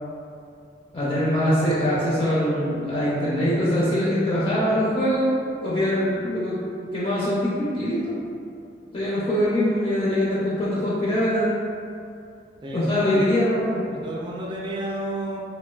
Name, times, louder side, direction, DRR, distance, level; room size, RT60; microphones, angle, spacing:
voice 1, 0.9-5.3 5.6-6.6 6.9-8.1 8.9-11.5 12.7-13.8, equal, 30° left, -9 dB, 0.5 m, -23 dB
voice 2, 13.9-15.4, right 1 dB, 25° right, -3 dB, 0.3 m, -31 dB
3.0 x 2.2 x 2.3 m, 2.4 s
head